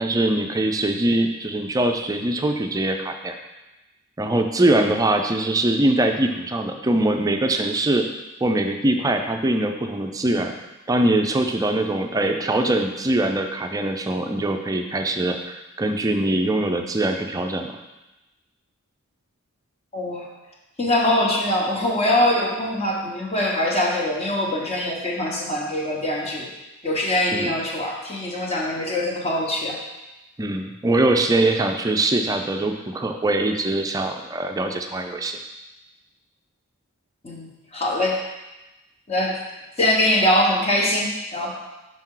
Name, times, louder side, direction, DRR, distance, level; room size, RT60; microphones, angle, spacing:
voice 1, 0.0-3.4 4.2-8.0 8.4-10.5 10.9-17.7 27.3-27.5 30.4-35.4, right 1 dB, 15° right, 4 dB, 0.4 m, -22 dB
voice 2, 19.9-20.2 20.8-26.5 26.8-29.8 37.2-38.2 39.1-39.4 39.8-41.5, left 1 dB, 30° left, -2 dB, 1.1 m, -23 dB
5.9 x 5.4 x 3.8 m, 1.0 s
head